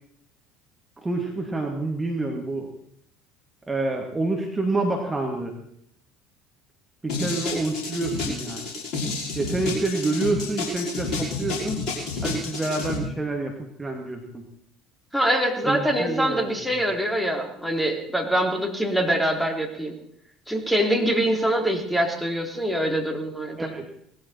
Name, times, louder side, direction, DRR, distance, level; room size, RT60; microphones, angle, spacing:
voice 1, 1.0-2.7 3.7-5.5 7.0-8.7 9.3-11.8 12.2-14.4 15.6-16.6 23.6-23.9, right 2 dB, 15° right, 1 dB, 2.5 m, -28 dB
sound 1, 7.1-13.0, left 3 dB, 50° left, 5.7 m, -30 dB
voice 2, 15.1-19.9 20.5-23.7, right 1 dB, 5° left, 2 dB, 3.4 m, -24 dB
19.5 x 14.5 x 4.4 m, 0.72 s
figure-of-eight pair, 65°, 0 cm